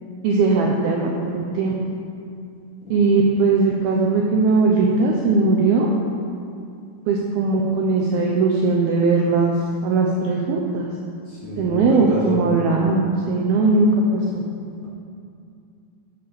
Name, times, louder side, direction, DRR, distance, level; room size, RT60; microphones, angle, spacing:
voice 1, 0.2-1.7 2.9-5.9 7.1-9.5 9.8-10.9 11.6-13.9 14.1-14.4, right 3 dB, 80° right, -1 dB, 2.2 m, -19 dB
voice 2, 11.3-12.4, left 2 dB, 45° left, -8 dB, 2.8 m, -28 dB
8.5 x 7.6 x 6.9 m, 2.4 s
omnidirectional pair, 5.2 m